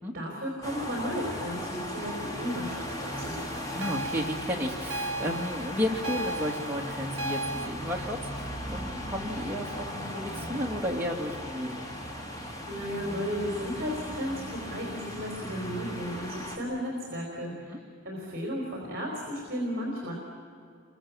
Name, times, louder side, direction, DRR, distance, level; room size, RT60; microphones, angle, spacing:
voice 1, 0.1-3.4 12.6-20.1, equal, 45° right, -1 dB, 4.4 m, -34 dB
sound 1, 0.6-16.6, equal, 15° left, 2.6 m, -37 dB
voice 2, 3.7-11.9 17.5-17.8, equal, 10° right, -1 dB, 2.6 m, -33 dB
sound 2, 3.8-7.7, right 2 dB, 85° right, 0.8 m, -35 dB
28.5 x 23.5 x 7.4 m, 2.5 s
head